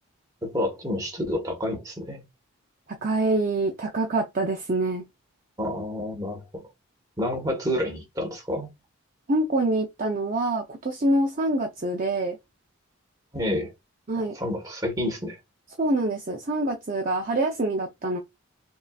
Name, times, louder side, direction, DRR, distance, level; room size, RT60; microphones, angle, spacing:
voice 1, 0.4-2.2 5.6-6.6 7.2-8.7 13.3-13.7 14.2-15.4, left 1 dB, 15° right, 1.4 m, -29 dB
voice 2, 3.0-5.0 9.3-12.4 14.1-14.3 15.8-18.2, right 2 dB, 40° right, 0.6 m, -25 dB
5.3 x 2.7 x 2.4 m
head